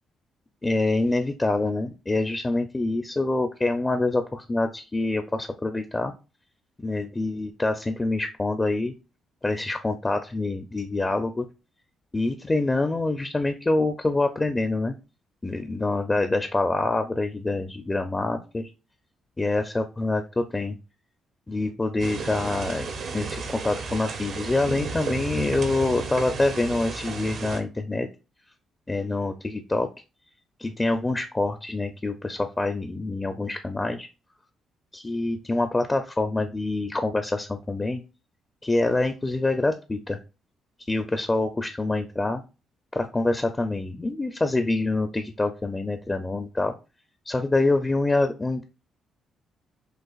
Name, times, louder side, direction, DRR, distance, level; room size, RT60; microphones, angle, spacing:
voice 1, 0.6-6.1 6.8-8.9 9.4-11.5 12.1-14.9 15.4-18.7 19.4-20.7 21.5-22.9 23.1-28.1 28.9-29.9 30.6-34.1 34.9-38.0 38.6-40.2 40.9-42.4 42.9-46.7 47.3-48.6, left 2 dB, 20° left, 8 dB, 0.5 m, -26 dB
sound 1, 22.0-27.6, right 4 dB, 60° right, 0.8 m, -33 dB
6.4 x 2.5 x 2.4 m, 0.30 s
cardioid pair, 90°, 0 cm